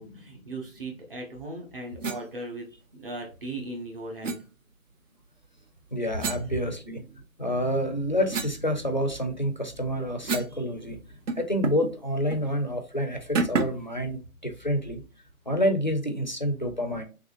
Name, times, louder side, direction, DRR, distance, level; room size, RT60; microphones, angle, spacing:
voice 1, 0.0-4.4, right 2 dB, 40° right, 1 dB, 1.0 m, -38 dB
sound 1, 2.0-2.2 4.2-4.4 6.2-7.2 7.7-10.6 10.9-11.0 11.3-11.9 12.3-12.5 13.3-13.9, right 4 dB, 60° right, 0.7 m, -32 dB
voice 2, 5.9-7.0 7.4-11.0 11.3-15.0 15.5-17.0, equal, 35° left, 6 dB, 0.4 m, -28 dB
3.6 x 3.2 x 2.4 m, 0.34 s
figure-of-eight pair, 160°, 42 cm